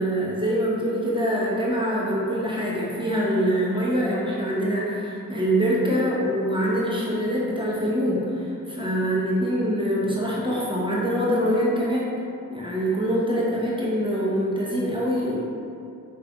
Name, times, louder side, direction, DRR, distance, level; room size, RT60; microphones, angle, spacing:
voice 1, 0.0-12.1 12.5-15.4, equal, 15° right, -7 dB, 0.7 m, -24 dB
5.1 x 2.5 x 2.3 m, 2.6 s
wide cardioid pair, 50°, 35 cm